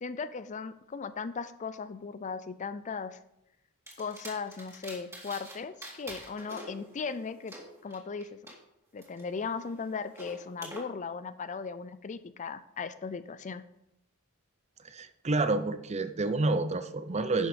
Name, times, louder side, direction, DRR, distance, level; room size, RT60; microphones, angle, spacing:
voice 1, 0.0-3.2 4.0-7.5 7.8-8.4 8.9-13.6, left 5 dB, 35° left, 14 dB, 0.4 m, -37 dB
sound 1, 3.9-5.5 5.8-8.5 9.0-10.8, right 1 dB, 15° right, 2.4 m, -46 dB
voice 2, 14.8-17.5, right 2 dB, 30° right, 11 dB, 0.6 m, -29 dB
11.0 x 6.2 x 5.1 m, 0.81 s
head